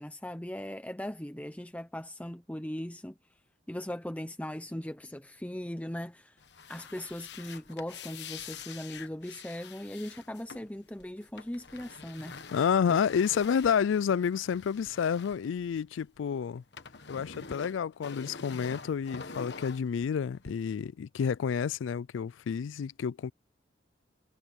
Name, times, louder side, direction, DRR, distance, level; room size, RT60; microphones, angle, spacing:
voice 1, 0.0-3.2 3.7-6.4 6.7-12.4 12.9-13.0 13.3-13.4, left 1 dB, 10° left, 0.6 m, -39 dB
sound 1, 6.4-16.2 16.4-20.5, left 5 dB, 65° left, 1.2 m, -46 dB
voice 2, 12.5-16.6 17.1-23.3, left 7 dB, 90° left, 0.3 m, -29 dB
head